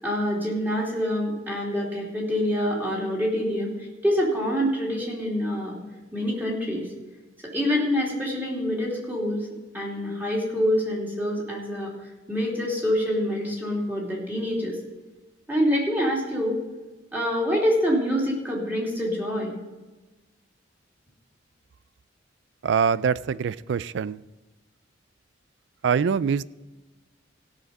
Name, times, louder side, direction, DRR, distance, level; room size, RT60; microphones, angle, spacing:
voice 1, 0.0-5.8 6.1-6.9 7.5-9.5 9.7-11.9 12.3-14.8 15.5-16.6 17.1-19.5, equal, 10° right, 3.0 m, -26 dB
voice 2, 22.6-24.2 25.8-26.4, right 6 dB, 65° right, 0.4 m, -24 dB
16.5 x 6.5 x 5.4 m
head